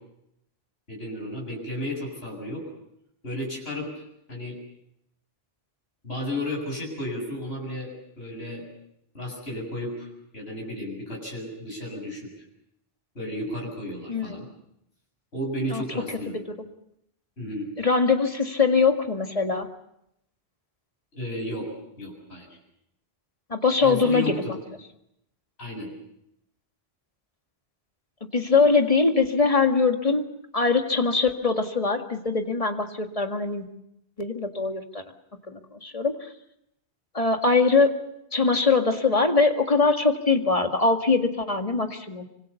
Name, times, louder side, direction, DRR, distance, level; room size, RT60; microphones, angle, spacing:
voice 1, 0.9-2.6 3.2-3.9 4.3-4.6 6.0-8.7 9.1-12.3 13.1-14.5 15.3-16.4 17.4-17.7 21.1-21.7 22.0-22.5 23.8-24.6 25.6-25.9, left 1 dB, 70° left, -2 dB, 7.8 m, -33 dB
voice 2, 14.1-14.4 15.7-15.8 16.3-16.4 17.8-19.7 23.5-24.3 28.3-30.2 30.5-33.7 34.2-35.0 35.5-36.2 37.1-37.9 38.3-42.2, left 4 dB, 35° left, 5 dB, 2.0 m, -22 dB
25.5 x 25.5 x 7.1 m, 0.79 s
omnidirectional pair, 1.1 m